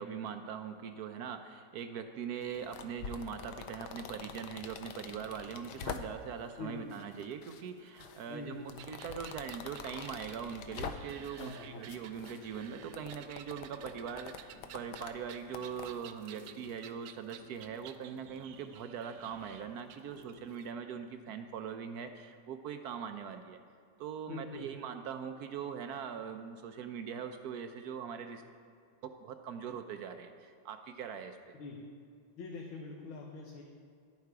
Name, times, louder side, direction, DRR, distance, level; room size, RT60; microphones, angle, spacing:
voice 1, 0.0-23.6 24.0-28.4 29.2-31.4, right 7 dB, 70° right, 7 dB, 0.9 m, -41 dB
sound 1, 2.4-6.4 6.9-7.6 8.0-11.6 11.9-15.9, left 7 dB, 70° left, 1.1 m, -45 dB
voice 2, 8.3-8.7 11.4-11.9 24.3-24.7 31.5-31.8 32.4-33.6, left 3 dB, 85° left, -1 dB, 1.8 m, -44 dB
sound 2, 8.8-20.7, right 11 dB, 85° right, 1.4 m, -54 dB
sound 3, 10.7-20.6, left 2 dB, 55° left, 1.4 m, -59 dB
11.0 x 10.5 x 4.7 m, 2.3 s
omnidirectional pair, 2.1 m